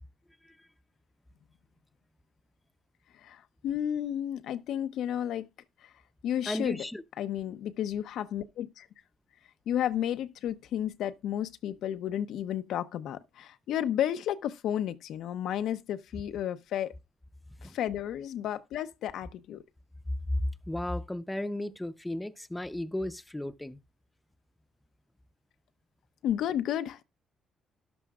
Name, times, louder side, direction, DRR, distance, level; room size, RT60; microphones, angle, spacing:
voice 1, 3.1-5.4 5.8-5.9 6.2-6.8 7.2-8.9 9.7-16.9 17.6-19.6 26.2-27.0, left 10 dB, 80° left, 0.7 m, -32 dB
voice 2, 6.5-7.0 17.6-17.7 20.3-23.8, left 1 dB, 10° left, 0.7 m, -34 dB
13.0 x 11.0 x 2.4 m
cardioid pair, 90°, 0 cm